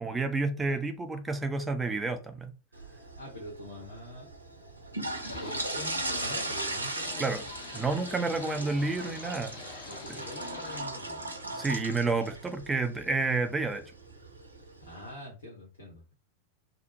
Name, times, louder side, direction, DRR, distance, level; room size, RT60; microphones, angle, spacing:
voice 1, 0.0-2.5 7.2-7.4 7.7-9.6 11.5-13.8, right 3 dB, 15° right, 7 dB, 0.5 m, -30 dB
sound 1, 2.7-15.1, right 2 dB, 80° right, 0.6 m, -38 dB
voice 2, 3.2-4.3 5.3-7.3 7.8-8.7 9.5-11.3 14.8-16.0, left 1 dB, 70° left, -2 dB, 1.0 m, -45 dB
sound 2, 5.2-10.8, left 6 dB, 40° left, 0.6 m, -47 dB
2.8 x 2.0 x 2.7 m, 0.34 s
figure-of-eight pair, 90°, 0 cm